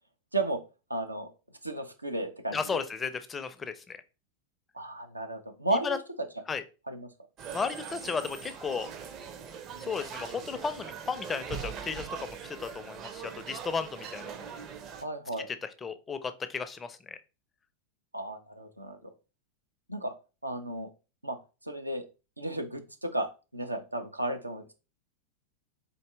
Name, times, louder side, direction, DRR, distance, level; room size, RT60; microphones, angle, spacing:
voice 1, 0.9-1.3 1.6-2.8 4.7-6.0 6.9-7.1 15.0-15.5 18.1-19.0 19.9-20.1 20.4-20.9 21.2-21.4 21.6-22.1 22.4-24.7, right 2 dB, 85° right, 5 dB, 0.6 m, -33 dB
voice 2, 2.5-4.0 5.7-6.0 6.5-6.6 7.5-8.9 9.8-14.5 15.5-17.2, left 5 dB, 15° left, 10 dB, 0.4 m, -34 dB
sound 1, 7.4-15.0, right 7 dB, 35° right, 0.6 m, -41 dB
4.0 x 2.7 x 3.4 m, 0.31 s
figure-of-eight pair, 90°, 0 cm